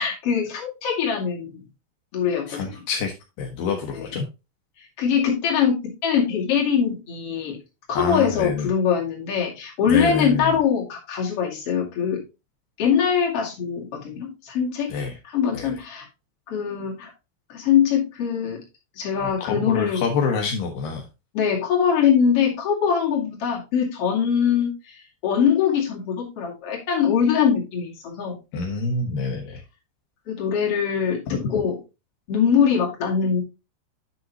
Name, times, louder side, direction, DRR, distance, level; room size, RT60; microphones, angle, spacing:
voice 1, 0.0-1.6 2.1-2.6 5.0-7.6 7.9-12.2 12.8-14.9 15.3-16.1 16.5-17.1 17.5-18.6 19.0-20.0 21.3-25.0 25.2-28.4 30.3-31.2 31.5-31.8 32.3-33.4, left 7 dB, 40° left, -2 dB, 2.4 m, -22 dB
voice 2, 2.5-3.1 3.4-4.3 7.9-8.7 9.9-10.5 14.9-15.1 15.5-15.8 19.2-21.1 28.5-29.6 31.3-31.5, left 4 dB, 80° left, 1 dB, 2.0 m, -27 dB
9.2 x 6.5 x 2.9 m, 0.26 s
omnidirectional pair, 5.7 m